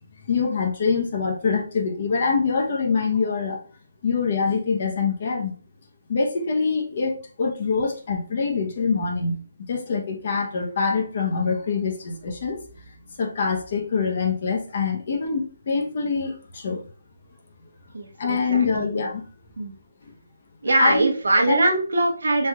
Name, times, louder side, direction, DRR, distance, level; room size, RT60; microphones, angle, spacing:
voice 1, 0.3-3.6 4.0-5.5 6.1-9.4 9.7-12.6 13.2-16.8 18.2-19.2 20.8-21.1 21.5-21.6, left 5 dB, 45° left, 2 dB, 0.7 m, -24 dB
voice 2, 17.9-18.9 19.6-19.7 20.6-22.5, right 2 dB, 85° right, 2 dB, 0.8 m, -22 dB
3.2 x 2.8 x 2.2 m, 0.40 s
hypercardioid pair, 170°, 0 cm